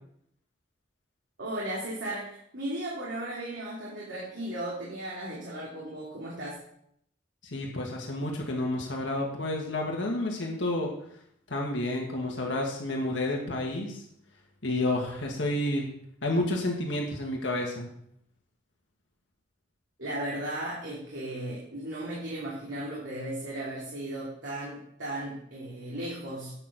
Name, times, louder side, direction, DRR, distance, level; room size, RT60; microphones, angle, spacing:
voice 1, 1.4-6.6 20.0-26.6, right 1 dB, 75° right, -6 dB, 2.7 m, -36 dB
voice 2, 7.4-10.9 11.5-14.0 14.6-15.9 16.2-17.9, left 1 dB, 80° left, 0 dB, 1.8 m, -30 dB
8.8 x 6.6 x 6.1 m, 0.70 s
head